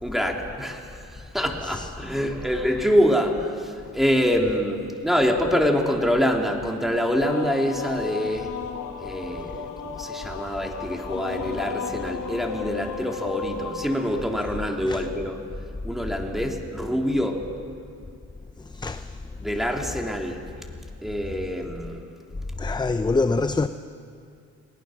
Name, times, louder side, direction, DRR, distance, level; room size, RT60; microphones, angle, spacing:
voice 1, 0.0-8.5 9.0-15.4 15.8-17.4 19.4-20.4 21.0-22.0, equal, ahead, 3.1 m, -25 dB
sound 1, 7.2-14.8, left 7 dB, 90° left, 1.8 m, -34 dB
voice 2, 18.7-19.1 22.6-23.7, left 3 dB, 15° left, 0.6 m, -24 dB
29.5 x 19.5 x 6.4 m
cardioid pair, 90°, 30 cm